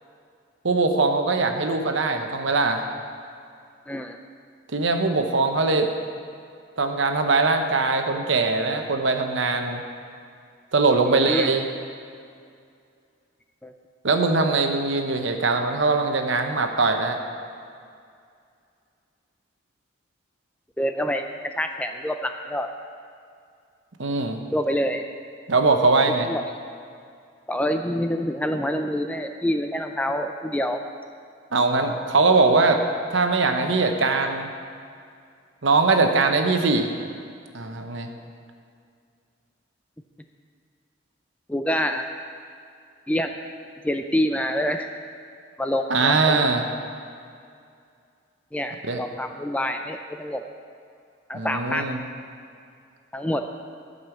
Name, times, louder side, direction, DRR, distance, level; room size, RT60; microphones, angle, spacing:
voice 1, 0.6-2.8 4.7-5.9 6.8-9.8 10.7-11.7 14.0-17.2 24.0-24.4 25.5-26.3 31.5-32.8 33.1-34.5 35.6-36.9 37.5-38.1 45.9-46.7 48.8-49.0 51.3-52.0, right 3 dB, 70° right, 5 dB, 0.9 m, -21 dB
voice 2, 3.9-4.2 11.0-11.5 13.6-13.7 20.8-21.2 21.6-22.7 24.5-25.0 26.3-26.4 27.5-30.8 41.5-42.0 43.1-43.3 43.8-44.9 45.6-46.4 48.5-50.4 51.3-52.0 53.1-53.4, equal, 5° left, 5 dB, 0.3 m, -26 dB
12.0 x 5.4 x 7.1 m, 2.3 s
head